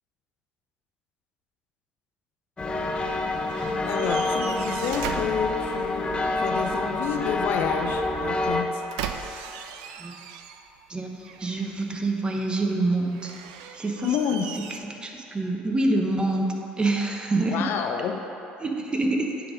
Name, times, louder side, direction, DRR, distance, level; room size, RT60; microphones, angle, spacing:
sound 1, 2.6-8.6, left 2 dB, 25° left, 0.7 m, -27 dB
sound 2, 3.5-6.1 8.4-10.9 11.2-12.1 13.1-14.8, right 8 dB, 80° right, 0.4 m, -38 dB
voice 1, 3.9-8.8 14.0-14.5 17.3-18.2, left 7 dB, 60° left, 5 dB, 0.5 m, -29 dB
voice 2, 10.9-13.3 13.7-17.7 18.6-19.4, right 2 dB, 20° right, 2 dB, 1.0 m, -27 dB
8.9 x 4.0 x 5.1 m, 2.9 s
hypercardioid pair, 70°, 4 cm